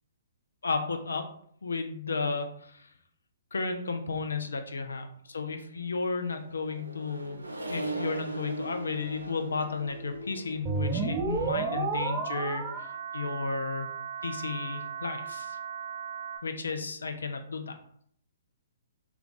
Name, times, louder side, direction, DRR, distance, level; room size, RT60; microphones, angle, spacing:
voice 1, 0.6-1.3 1.6-2.9 3.5-7.4 7.7-13.9 14.2-15.6 16.4-17.8, left 4 dB, 75° left, 6 dB, 0.4 m, -33 dB
Accelerating revving vroom, 6.0-12.7, right 2 dB, 90° right, 0.4 m, -40 dB
sound 1, 10.7-16.4, right 5 dB, 25° right, 0.4 m, -33 dB
2.3 x 2.3 x 3.7 m, 0.64 s
figure-of-eight pair, 125°, 0 cm